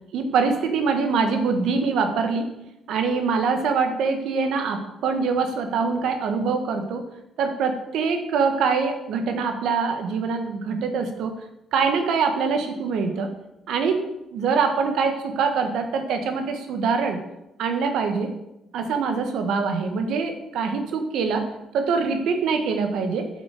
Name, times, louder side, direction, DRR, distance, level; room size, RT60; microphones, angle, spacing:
voice 1, 0.1-2.5 2.9-7.1 7.4-11.4 11.7-13.3 13.7-17.2 17.6-18.4 18.7-23.3, right 5 dB, 80° right, 6 dB, 1.3 m, -24 dB
6.7 x 6.5 x 6.6 m, 0.89 s
cardioid pair, 90°, 0 cm